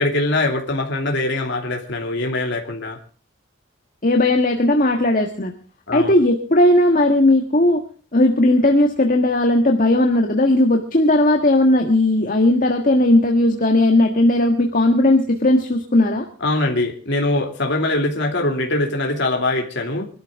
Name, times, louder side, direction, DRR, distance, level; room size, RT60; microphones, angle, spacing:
voice 1, 0.0-3.0 5.9-6.1 16.4-20.1, left 2 dB, 55° left, 2 dB, 2.7 m, -22 dB
voice 2, 4.0-5.5 5.9-7.8 8.1-16.3, left 1 dB, 40° left, 4 dB, 1.6 m, -16 dB
25.0 x 13.0 x 3.6 m, 0.39 s
head